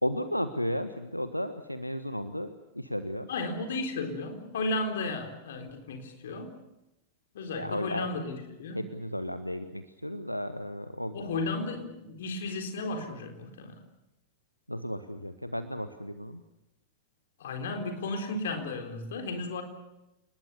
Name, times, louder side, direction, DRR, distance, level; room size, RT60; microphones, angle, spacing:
voice 1, 0.0-3.3 7.5-8.1 8.7-11.5 14.7-16.4, equal, 90° left, 11 dB, 1.0 m, -34 dB
voice 2, 3.3-6.5 7.3-8.8 11.1-13.8 17.4-19.6, left 3 dB, 60° left, 5 dB, 4.1 m, -34 dB
29.5 x 20.0 x 6.9 m, 0.93 s
figure-of-eight pair, 90°, 0 cm